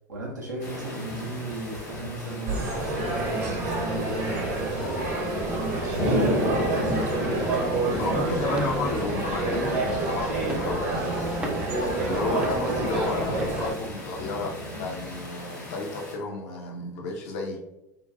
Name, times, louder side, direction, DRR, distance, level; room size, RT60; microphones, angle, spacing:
voice 1, 0.1-5.1 5.5-7.3, right 2 dB, 80° right, -3 dB, 0.5 m, -36 dB
sound 1, 0.6-16.1, left 1 dB, 75° left, 1.2 m, -34 dB
sound 2, 2.5-13.7, right 2 dB, 55° right, 0.8 m, -28 dB
sound 3, 5.5-5.8 6.2-6.3 6.5-7.1 7.5-7.8 8.5-9.0 9.4-10.0 10.4-10.8 11.4-11.8 12.4-12.7 13.3-13.6 14.2-14.3, right 1 dB, 10° right, 0.4 m, -37 dB
voice 2, 8.0-11.5 12.0-17.6, left 3 dB, 60° left, 1 dB, 0.5 m, -32 dB
2.6 x 2.2 x 2.4 m, 0.90 s
figure-of-eight pair, 75°, 9 cm